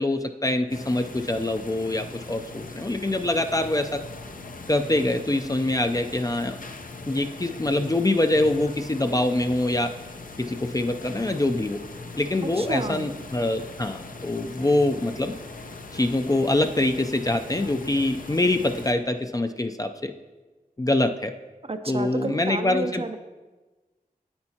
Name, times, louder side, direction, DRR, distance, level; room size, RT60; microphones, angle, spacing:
voice 1, 0.0-4.0 4.7-6.6 7.1-9.9 10.4-11.8 12.1-15.3 15.9-20.1 20.8-21.3 21.9-23.0, left 2 dB, 25° left, 7 dB, 0.4 m, -24 dB
sound 1, 0.7-18.9, left 3 dB, 65° left, 0.6 m, -40 dB
voice 2, 12.4-13.1 21.6-23.2, right 2 dB, 40° right, 8 dB, 0.5 m, -31 dB
8.8 x 8.6 x 2.8 m, 1.2 s
wide cardioid pair, 40°, 15 cm